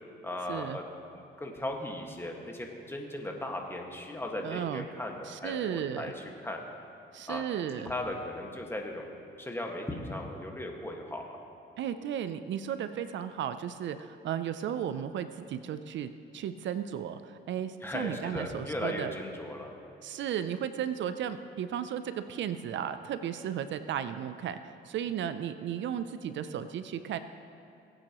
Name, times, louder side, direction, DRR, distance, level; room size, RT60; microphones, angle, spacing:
voice 1, 0.2-0.8 1.1-6.6 7.3-7.4 7.8-9.1 9.4-11.4 17.8-19.7, left 1 dB, 10° left, 1 dB, 1.7 m, -37 dB
voice 2, 4.4-4.8 5.2-6.1 7.1-7.9 11.8-19.1 20.0-27.2, right 9 dB, 70° right, 11 dB, 0.5 m, -35 dB
20.5 x 9.0 x 3.0 m, 2.6 s
cardioid pair, 90°, 20 cm